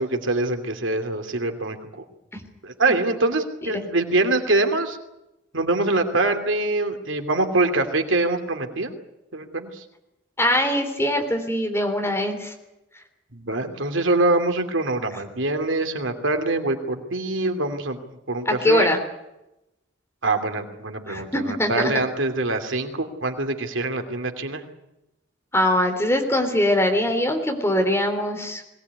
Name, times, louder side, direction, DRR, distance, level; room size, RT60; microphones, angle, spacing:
voice 1, 0.0-2.0 2.6-5.0 5.5-8.9 9.3-9.8 13.3-18.0 18.3-18.9 20.2-24.6, right 2 dB, 85° right, 6 dB, 2.8 m, -24 dB
voice 2, 10.4-12.5 18.4-19.0 21.1-21.9 25.5-28.6, left 1 dB, 15° left, 4 dB, 3.4 m, -22 dB
22.0 x 18.0 x 9.5 m, 0.91 s
head